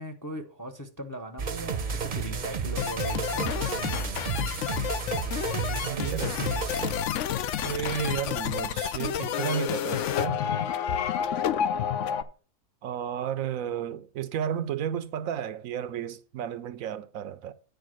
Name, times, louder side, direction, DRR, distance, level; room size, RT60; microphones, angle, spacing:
voice 1, 0.0-4.1 5.2-6.7 7.2-8.0 11.0-11.5, right 1 dB, 15° left, 0.7 m, -41 dB
sound 1, 1.4-7.0, right 5 dB, 40° right, 0.7 m, -32 dB
sound 2, 2.8-12.2, left 9 dB, 65° left, 0.9 m, -30 dB
voice 2, 5.8-6.4 7.6-10.4 12.8-17.5, right 9 dB, 70° right, 0.9 m, -32 dB
9.2 x 4.9 x 6.3 m
omnidirectional pair, 1.5 m